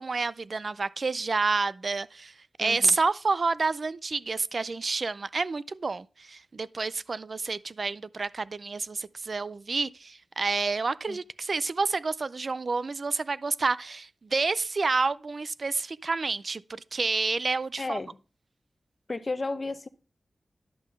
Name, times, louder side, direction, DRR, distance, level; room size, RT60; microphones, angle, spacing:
voice 1, 0.0-18.0, right 4 dB, 60° right, 0.4 m, -29 dB
voice 2, 2.6-3.0 11.1-11.2 17.8-18.2 19.1-19.9, left 3 dB, 45° left, 0.8 m, -33 dB
11.0 x 3.7 x 6.2 m
cardioid pair, 50°, 0 cm